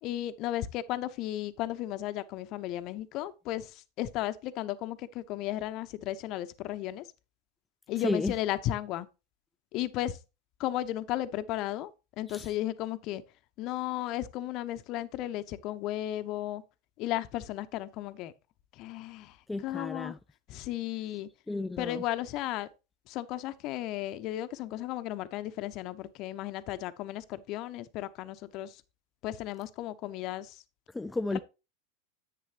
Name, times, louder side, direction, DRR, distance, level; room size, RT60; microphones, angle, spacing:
voice 1, 0.0-7.0 7.9-9.1 9.7-10.2 10.6-11.9 12.2-13.2 13.6-16.6 17.0-18.3 18.8-19.4 19.6-20.1 20.5-21.3 21.8-22.7 23.1-28.8 29.2-30.6 31.3-31.4, left 14 dB, 45° left, 0.8 m, -34 dB
voice 2, 8.0-8.3 12.3-12.5 19.5-20.2 21.5-22.0 30.9-31.4, left 2 dB, 10° left, 0.3 m, -32 dB
10.5 x 8.5 x 2.9 m
figure-of-eight pair, 85°, 0 cm